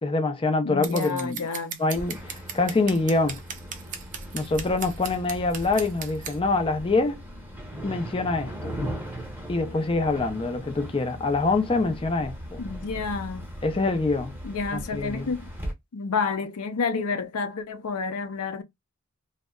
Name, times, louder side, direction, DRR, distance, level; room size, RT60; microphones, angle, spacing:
voice 1, 0.0-1.4 1.8-3.4 4.3-7.2 7.8-8.8 9.5-12.6 13.6-14.4 14.7-15.3, left 3 dB, 25° left, 0.4 m, -25 dB
voice 2, 0.6-1.8 12.6-13.5 14.4-15.5 15.9-18.6, left 4 dB, 75° left, 0.5 m, -29 dB
Scissors, 0.8-6.4, right 7 dB, 35° right, 0.5 m, -37 dB
sound 1, 1.9-15.7, equal, 10° right, 0.8 m, -38 dB
2.7 x 2.1 x 2.3 m
head